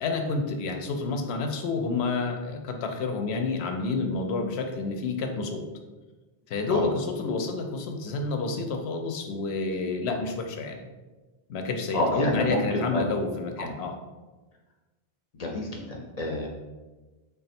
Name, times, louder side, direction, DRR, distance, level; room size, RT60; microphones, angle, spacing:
voice 1, 0.0-5.6 6.5-10.8 11.5-13.9, left 3 dB, 90° left, 5 dB, 0.8 m, -29 dB
voice 2, 11.9-13.0 13.6-13.7 15.3-16.5, left 1 dB, 50° left, -1 dB, 0.5 m, -28 dB
3.5 x 2.3 x 4.1 m, 1.2 s
omnidirectional pair, 1.0 m